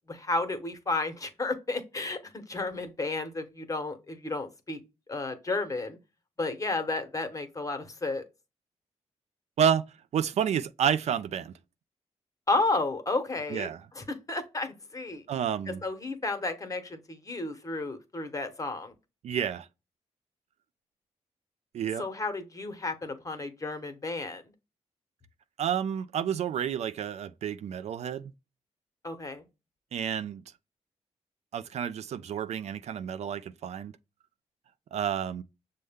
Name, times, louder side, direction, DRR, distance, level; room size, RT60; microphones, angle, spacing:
voice 1, 0.1-4.8 5.1-6.0 6.4-8.2 12.5-13.7 13.9-15.2 15.8-18.9 22.0-24.4 29.0-29.5, left 3 dB, 30° left, 1.0 m, -32 dB
voice 2, 10.1-11.5 13.5-13.8 15.3-15.8 19.2-19.7 21.7-22.0 25.6-28.3 29.9-30.4 31.5-33.9 34.9-35.4, right 8 dB, 65° right, 0.4 m, -30 dB
6.3 x 2.2 x 3.5 m
cardioid pair, 70°, 12 cm